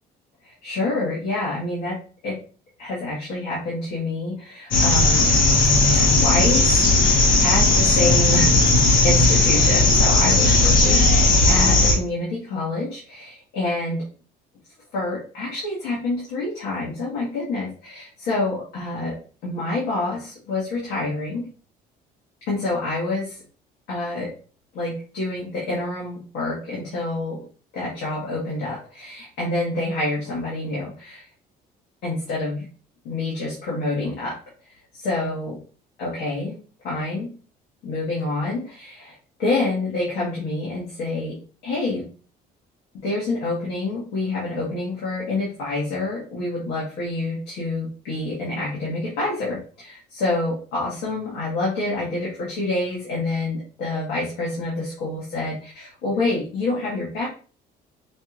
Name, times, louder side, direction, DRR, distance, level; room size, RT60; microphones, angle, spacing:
voice 1, 0.4-2.4 2.8-5.4 5.8-6.8 7.4-8.6 9.0-14.0 14.9-19.2 19.4-21.5 22.5-23.4 23.9-24.3 24.7-27.4 27.7-31.2 32.0-32.7 33.0-34.4 35.0-35.6 36.0-36.6 36.8-37.3 37.8-39.1 39.4-42.1 43.0-57.3, left 2 dB, 80° left, -7 dB, 1.7 m, -27 dB
sound 1, 4.7-11.9, left 2 dB, 55° left, 1.1 m, -16 dB
5.2 x 3.1 x 2.5 m, 0.39 s
cardioid pair, 110°, 17 cm